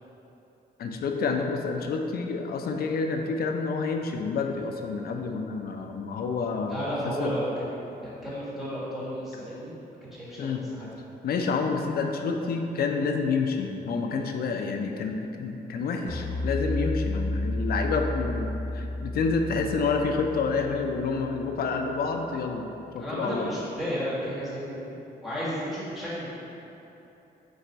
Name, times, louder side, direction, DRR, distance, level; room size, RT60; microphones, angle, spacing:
voice 1, 0.8-7.3 10.4-10.6 11.2-22.7 22.9-23.5, left 4 dB, 65° left, 4 dB, 0.4 m, -28 dB
voice 2, 6.7-9.7 10.0-10.9 23.0-25.0 25.2-26.3, equal, ahead, -10 dB, 1.5 m, -33 dB
sound 1, 16.1-21.5, left 1 dB, 15° left, 1.1 m, -32 dB
4.0 x 2.5 x 4.4 m, 3.0 s
cardioid pair, 100°, 17 cm